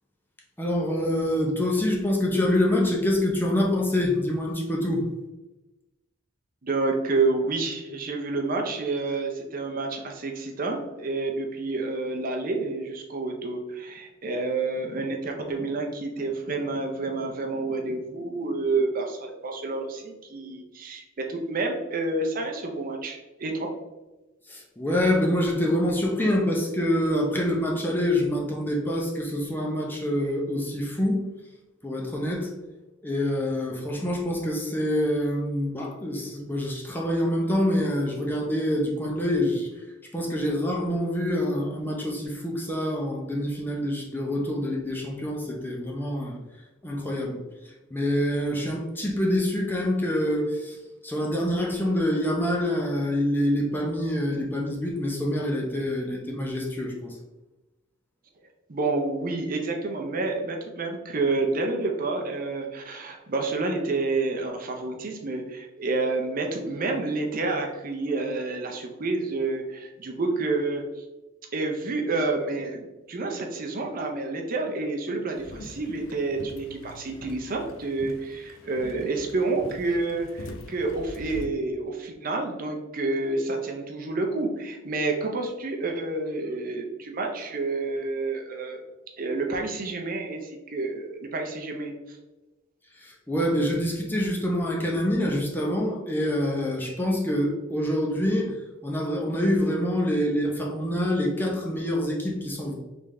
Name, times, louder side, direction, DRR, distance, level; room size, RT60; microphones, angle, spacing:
voice 1, 0.6-5.0 24.5-31.3 31.8-32.5 33.0-39.7 40.1-46.4 46.8-50.8 51.0-57.1 92.9-98.5 98.8-102.7, left 1 dB, 10° left, -1 dB, 0.7 m, -26 dB
voice 2, 6.6-21.0 21.3-23.7 58.7-71.0 71.5-88.8 89.2-92.2, right 3 dB, 45° right, 2 dB, 0.6 m, -29 dB
sound 1, 75.3-81.5, left 2 dB, 80° left, 0.5 m, -43 dB
3.9 x 3.4 x 3.2 m, 1.1 s
head